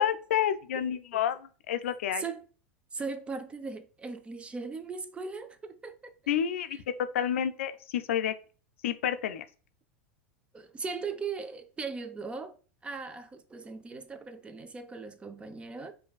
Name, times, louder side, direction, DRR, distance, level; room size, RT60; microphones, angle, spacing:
voice 1, 0.0-2.2 6.3-8.3 8.8-9.4, left 9 dB, 80° left, 0.4 m, -29 dB
voice 2, 2.2-2.5 2.9-6.1 10.5-12.6 12.8-15.9, right 4 dB, 15° right, 0.4 m, -38 dB
4.9 x 2.6 x 2.3 m
hypercardioid pair, 105°, 7 cm